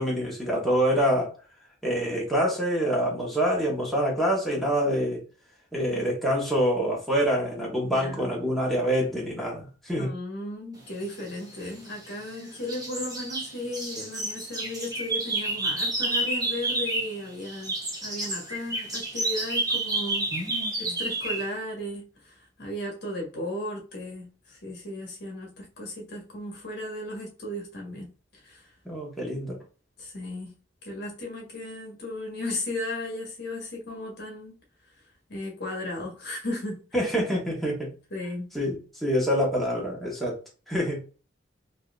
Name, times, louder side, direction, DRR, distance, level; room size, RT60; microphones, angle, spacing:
voice 1, 0.0-1.3 1.8-5.2 5.7-10.1 20.3-21.0 28.8-29.6 36.9-37.9 38.5-40.4 40.7-41.0, equal, ahead, 1.3 m, -26 dB
voice 2, 7.8-8.3 10.0-20.3 20.8-28.1 28.4-28.6 30.0-30.6 30.8-34.6 35.3-36.8 38.1-38.5, left 1 dB, 60° left, 1.4 m, -35 dB
sound 1, 11.5-12.4 12.7-17.2 17.4-21.5, right 2 dB, 20° right, 1.0 m, -30 dB
4.1 x 2.8 x 2.5 m
head